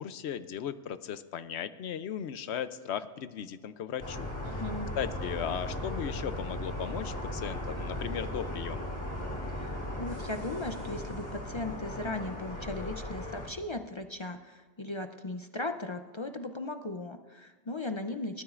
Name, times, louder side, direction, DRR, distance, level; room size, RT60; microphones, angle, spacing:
voice 1, 0.0-4.6 5.0-8.9, left 9 dB, 70° left, 13 dB, 0.8 m, -37 dB
sound 1, 4.0-13.5, left 1 dB, 15° left, 2.3 m, -37 dB
voice 2, 4.4-4.9 9.6-18.4, left 2 dB, 45° left, 7 dB, 0.3 m, -37 dB
25.5 x 12.5 x 2.5 m, 1.4 s
omnidirectional pair, 1.2 m